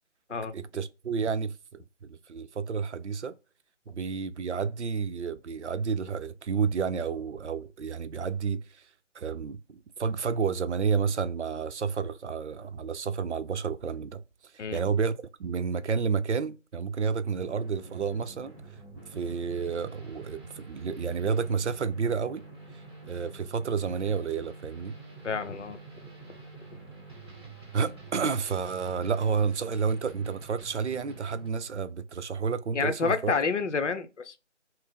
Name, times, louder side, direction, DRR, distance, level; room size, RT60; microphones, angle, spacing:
voice 1, 0.5-3.3 3.9-8.9 9.1-14.2 14.7-18.6 19.1-22.4 23.1-25.0 27.7-33.3, right 5 dB, 65° right, 0.5 m, -30 dB
sound 1, 17.2-31.5, right 3 dB, 20° right, 0.8 m, -47 dB
voice 2, 25.2-25.8 32.7-34.4, left 5 dB, 70° left, 0.7 m, -29 dB
4.1 x 2.0 x 3.4 m
figure-of-eight pair, 160°, 37 cm